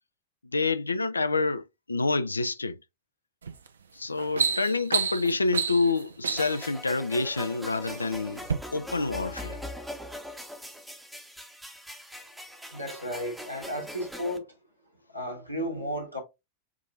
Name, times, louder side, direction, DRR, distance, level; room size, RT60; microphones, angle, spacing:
voice 1, 0.5-2.8 3.9-9.6, left 3 dB, 80° left, 0.3 m, -28 dB
sound 1, 3.4-3.7 4.0-6.7 7.5-8.0 8.4-8.6, right 6 dB, 70° right, 0.5 m, -29 dB
sound 2, 6.4-14.4, left 1 dB, 5° right, 0.8 m, -41 dB
voice 2, 12.7-14.5 15.1-16.2, equal, 90° right, 1.4 m, -33 dB
5.9 x 2.6 x 2.5 m
figure-of-eight pair, 90°, 0 cm